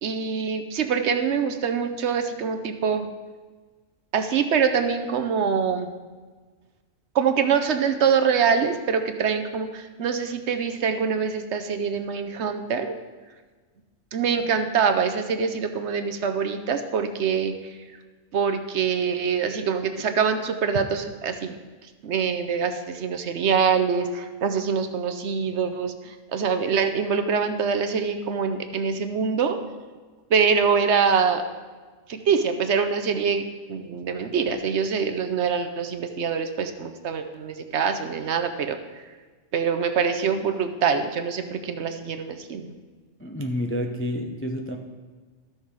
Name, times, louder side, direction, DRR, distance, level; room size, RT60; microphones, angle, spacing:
voice 1, 0.0-3.1 4.1-5.9 7.1-13.0 14.1-17.8 18.3-21.6 21.8-29.6 30.3-31.4 32.1-39.0 39.5-42.7, right 6 dB, 60° right, 8 dB, 0.9 m, -24 dB
voice 2, 43.2-44.8, equal, 20° left, 4 dB, 0.4 m, -29 dB
13.0 x 6.6 x 4.7 m, 1.4 s
omnidirectional pair, 1.4 m